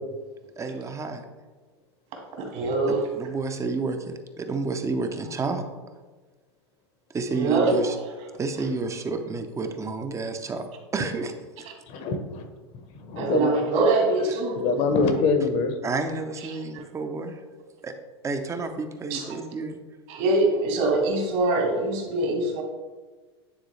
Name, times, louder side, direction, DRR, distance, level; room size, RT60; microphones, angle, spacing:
voice 1, 0.6-1.2 2.9-5.6 7.1-8.0 8.4-10.6 10.9-11.3 15.8-17.4 17.8-17.9 18.2-19.8, right 3 dB, 20° right, 7 dB, 0.7 m, -30 dB
voice 2, 2.1-3.1 7.3-7.9 13.2-14.6 16.5-16.8 19.1-19.5 20.1-22.6, right 2 dB, 55° right, 1 dB, 1.8 m, -24 dB
voice 3, 11.9-12.4 12.7-13.5 14.5-15.7, left 4 dB, 50° left, 6 dB, 1.1 m, -24 dB
9.5 x 3.7 x 3.2 m, 1.3 s
hypercardioid pair, 100°, 14 cm